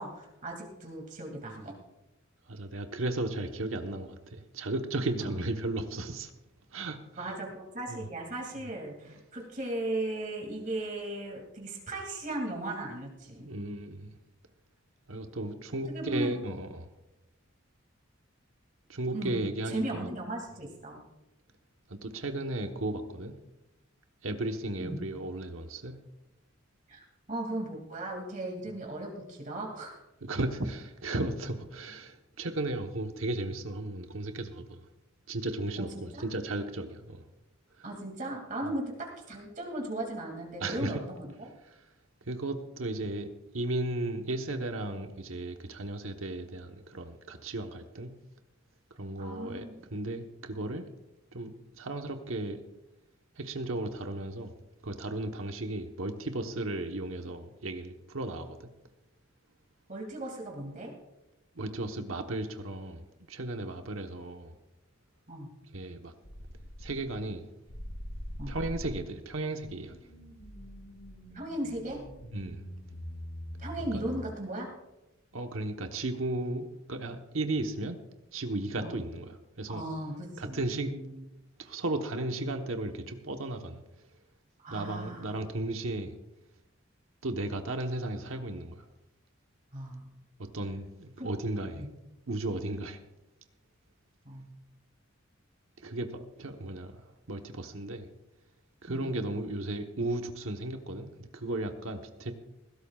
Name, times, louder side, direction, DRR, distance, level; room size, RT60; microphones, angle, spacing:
voice 1, 0.0-1.7 7.2-13.5 15.9-16.3 19.1-19.3 19.7-21.0 24.8-25.0 26.9-30.0 35.8-36.2 37.8-41.5 49.2-49.8 59.9-60.9 65.3-65.5 68.4-68.6 71.3-72.0 73.6-74.7 78.8-79.0 79.7-81.3 84.6-85.3 89.7-90.1 91.2-91.3 91.8-91.9 94.3-94.5 98.9-99.1, right 1 dB, 40° right, 0 dB, 2.5 m, -37 dB
voice 2, 2.5-6.3 6.7-7.3 7.9-8.1 9.0-9.1 13.4-14.1 15.1-16.9 18.9-20.1 21.9-23.3 24.2-26.0 30.2-34.8 35.3-37.2 37.8-37.9 40.6-41.0 41.6-41.8 42.3-43.3 43.5-48.1 48.9-50.9 51.3-52.6 53.4-54.5 54.8-58.7 61.5-64.5 65.7-66.1 66.8-67.4 68.5-70.0 72.3-72.7 73.9-74.0 75.3-78.0 78.3-79.8 80.4-80.9 81.6-83.8 84.7-86.1 87.2-88.9 90.4-91.8 92.3-93.0 95.8-98.1 98.8-102.3, right 2 dB, 85° right, 5 dB, 1.2 m, -35 dB
sound 1, 66.2-67.3 67.7-74.3, equal, 75° left, 5.0 m, -43 dB
20.5 x 16.5 x 2.4 m, 0.96 s
head